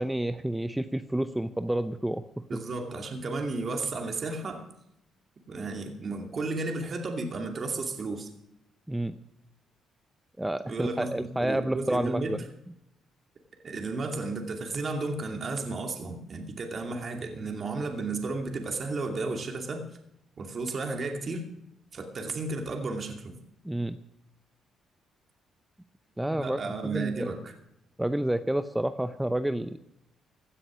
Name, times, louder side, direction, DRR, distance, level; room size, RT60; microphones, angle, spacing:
voice 1, 0.0-2.2 8.9-9.2 10.4-12.4 23.6-24.0 26.2-27.3 28.0-29.8, right 1 dB, 5° right, 10 dB, 0.7 m, -29 dB
voice 2, 2.5-4.6 5.5-8.3 10.6-12.4 13.6-19.8 20.4-21.5 21.9-23.3 26.3-27.5, right 3 dB, 45° right, 3 dB, 2.5 m, -33 dB
16.5 x 9.9 x 6.3 m, 0.81 s
cardioid pair, 90°, 0 cm